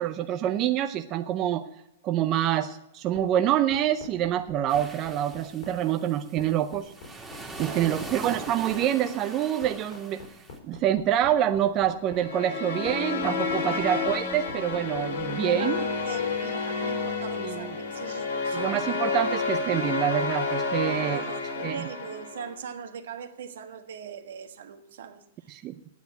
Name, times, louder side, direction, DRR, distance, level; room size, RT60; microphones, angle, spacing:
voice 1, 0.0-1.7 2.0-6.9 7.6-10.2 10.6-15.8 17.4-17.7 18.5-21.2 21.6-21.9 25.5-25.8, right 11 dB, 35° right, 0.6 m, -26 dB
sound 1, 3.1-16.0, left 5 dB, 65° left, 3.4 m, -44 dB
sound 2, 4.7-10.6, right 2 dB, 5° right, 2.0 m, -42 dB
voice 2, 7.6-8.1 13.7-14.0 15.4-19.3 20.7-25.6, right 7 dB, 75° right, 1.3 m, -40 dB
sound 3, 12.1-22.5, left 4 dB, 80° left, 2.7 m, -30 dB
9.3 x 8.0 x 9.3 m
hypercardioid pair, 130°, 0 cm